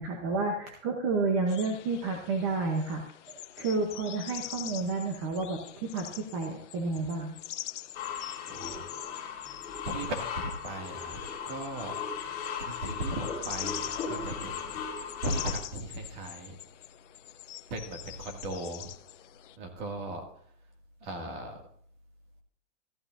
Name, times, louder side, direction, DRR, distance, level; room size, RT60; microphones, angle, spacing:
voice 1, 0.0-7.4, right 3 dB, 20° right, 2 dB, 0.8 m, -31 dB
sound 1, 1.5-19.6, left 13 dB, 70° left, 0.6 m, -44 dB
sound 2, 7.9-15.5, left 6 dB, 20° left, 2.4 m, -37 dB
voice 2, 8.5-8.8 9.3-9.6 9.9-12.0 12.6-14.8 15.2-16.6 17.7-18.9 19.6-20.2 21.0-21.6, right 1 dB, 40° right, 3 dB, 2.1 m, -37 dB
14.5 x 11.5 x 2.6 m, 0.63 s
supercardioid pair, 175°, 38 cm